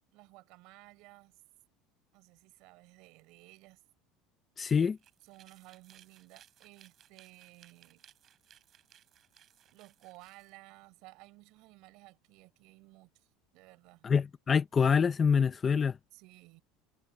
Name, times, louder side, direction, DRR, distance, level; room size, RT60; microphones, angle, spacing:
voice 1, 0.0-1.4 2.1-3.8 5.2-8.0 9.6-13.3 13.5-14.0 16.1-16.6, right 22 dB, 55° right, 5.1 m, -56 dB
voice 2, 4.6-5.0 14.0-16.0, left 6 dB, 20° left, 0.8 m, -26 dB
sound 1, 4.9-10.5, right 10 dB, 30° right, 7.7 m, -62 dB
cardioid pair, 165°, 0 cm